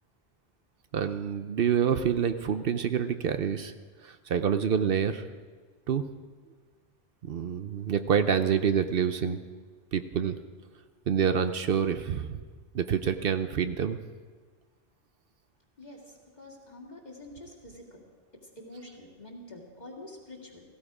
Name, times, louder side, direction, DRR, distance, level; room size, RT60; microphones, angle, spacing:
voice 1, 0.9-3.7 4.0-5.2 5.9-6.0 7.2-9.4 9.9-10.4 11.1-12.4 12.7-14.0, right 8 dB, 65° right, 10 dB, 0.8 m, -27 dB
voice 2, 16.4-18.0 18.6-20.6, left 1 dB, 45° left, -1 dB, 2.6 m, -46 dB
16.5 x 16.0 x 4.9 m, 1.4 s
omnidirectional pair, 1.1 m